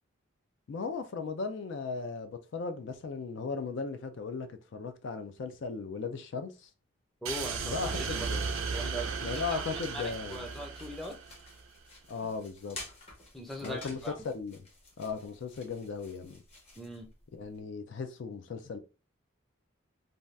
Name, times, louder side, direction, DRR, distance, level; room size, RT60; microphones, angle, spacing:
voice 1, 0.7-6.7 7.6-8.5 9.2-10.4 12.1-12.8 13.6-14.6 15.0-16.4 17.3-18.8, left 5 dB, 60° left, 0.4 m, -37 dB
voice 2, 7.2-8.3 8.7-9.6 9.9-11.2 13.3-14.1 16.8-17.1, equal, ahead, 0.5 m, -40 dB
sound 1, 7.2-11.6, right 5 dB, 80° right, 0.5 m, -35 dB
sound 2, 8.8-17.6, left 2 dB, 30° left, 0.8 m, -51 dB
2.6 x 2.3 x 3.2 m
head